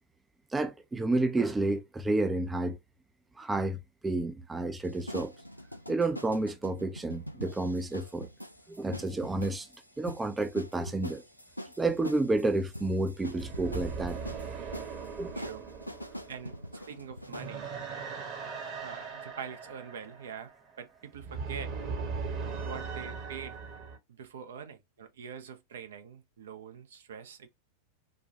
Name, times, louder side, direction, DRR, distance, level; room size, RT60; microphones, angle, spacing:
voice 1, 0.5-2.8 3.4-5.3 5.9-8.3 8.7-9.7 10.0-11.2 11.8-14.2 15.2-15.3, right 2 dB, 10° right, 0.5 m, -30 dB
sound 1, 4.8-17.6, equal, 90° left, 0.4 m, -44 dB
sound 2, 12.8-24.0, right 5 dB, 40° right, 1.1 m, -39 dB
voice 2, 15.3-15.6 16.3-16.6 16.9-17.7 18.7-20.5 20.8-21.7 22.6-23.6 24.1-27.5, right 7 dB, 60° right, 0.6 m, -44 dB
4.0 x 2.3 x 2.8 m
figure-of-eight pair, 90°, 0 cm